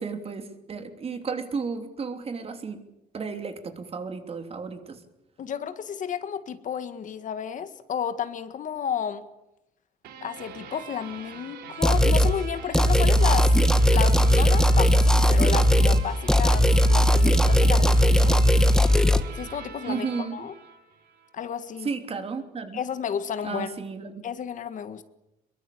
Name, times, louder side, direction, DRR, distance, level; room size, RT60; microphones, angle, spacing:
voice 1, 0.0-2.8 3.1-5.0 19.9-20.4 21.8-22.8 23.4-24.1, right 5 dB, 35° right, 7 dB, 3.2 m, -33 dB
voice 2, 5.4-9.2 10.2-13.5 13.9-18.4 19.3-20.1 20.3-20.5 21.3-21.9 22.7-23.8 24.2-25.0, left 8 dB, 55° left, 11 dB, 1.8 m, -32 dB
sound 1, 10.0-21.3, right 6 dB, 90° right, 3.6 m, -43 dB
sound 2, 11.8-12.3 12.7-16.0 16.3-19.2, equal, 5° left, 1.6 m, -18 dB
23.0 x 22.5 x 8.6 m, 0.89 s
cardioid pair, 120°, 16 cm